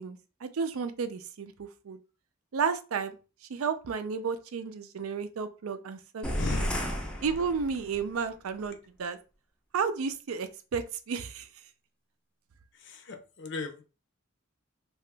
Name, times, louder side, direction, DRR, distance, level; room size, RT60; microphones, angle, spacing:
voice 1, 0.0-2.0 2.5-3.2 3.5-6.7 7.2-9.2 9.7-11.5, right 5 dB, 85° right, 10 dB, 0.4 m, -32 dB
sound 1, 6.2-8.1, equal, 5° left, 0.4 m, -33 dB
voice 2, 6.4-6.8 12.9-13.8, left 3 dB, 55° left, 5 dB, 0.6 m, -36 dB
2.8 x 2.3 x 3.3 m, 0.33 s
head